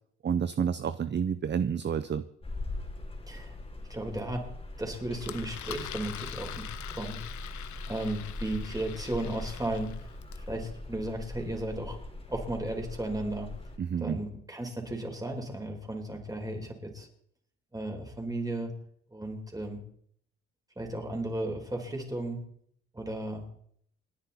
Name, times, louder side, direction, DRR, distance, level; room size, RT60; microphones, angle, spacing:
voice 1, 0.2-2.2 13.8-14.2, right 7 dB, 35° right, 13 dB, 0.7 m, -29 dB
sound 1, 2.4-13.8, left 2 dB, 20° left, 3.3 m, -41 dB
voice 2, 3.9-4.5 4.8-7.2 7.9-9.9 10.4-12.0 12.3-13.5 14.0-17.1 17.7-18.7 19.1-19.8 20.8-22.4 22.9-23.4, right 1 dB, 10° right, 2 dB, 4.4 m, -35 dB
Engine, 5.2-10.5, left 11 dB, 70° left, 1.1 m, -44 dB
29.5 x 10.0 x 4.3 m, 0.68 s
cardioid pair, 90°, 30 cm